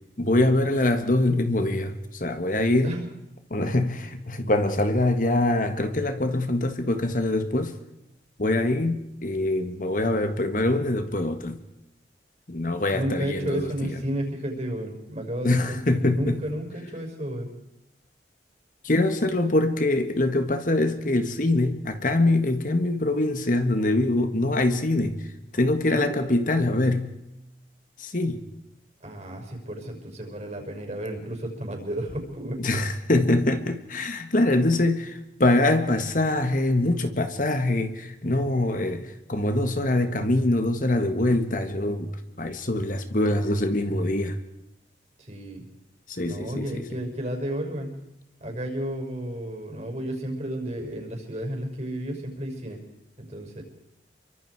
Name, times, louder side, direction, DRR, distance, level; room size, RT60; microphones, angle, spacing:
voice 1, 0.2-2.9 3.5-7.7 8.4-11.6 12.5-13.9 15.4-16.4 18.8-25.2 25.5-27.1 28.0-28.4 32.6-42.1 42.4-44.4 46.1-46.8, left 2 dB, 50° left, 1.8 m, -24 dB
voice 2, 12.9-17.5 25.9-26.2 29.0-32.7 45.2-45.6 46.2-48.0 48.4-52.8 53.3-53.6, right 1 dB, 40° right, 5.8 m, -32 dB
29.5 x 24.0 x 4.8 m
head